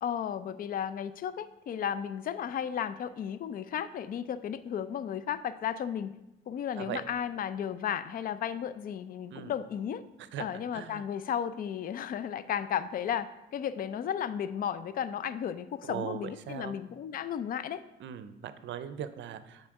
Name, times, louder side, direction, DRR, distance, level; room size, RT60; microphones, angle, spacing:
voice 1, 0.0-6.1 6.5-10.0 10.4-13.3 13.5-17.8, left 9 dB, 45° left, 14 dB, 0.4 m, -34 dB
voice 2, 10.3-11.0 15.8-16.7 18.0-19.7, right 9 dB, 70° right, 12 dB, 0.5 m, -39 dB
6.1 x 4.3 x 4.6 m, 0.94 s
cardioid pair, 90°, 20 cm